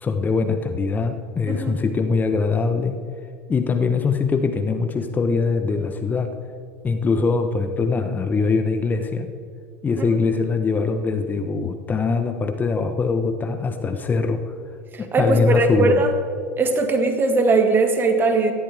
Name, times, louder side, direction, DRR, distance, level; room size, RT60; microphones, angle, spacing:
voice 1, 0.0-3.0 3.5-6.4 6.8-9.3 9.8-14.4 15.0-16.0, left 4 dB, 25° left, 8 dB, 1.1 m, -22 dB
voice 2, 15.1-16.1 16.6-18.5, right 3 dB, 30° right, 6 dB, 2.0 m, -19 dB
18.0 x 12.5 x 3.5 m, 2.4 s
hypercardioid pair, 80°, 7 cm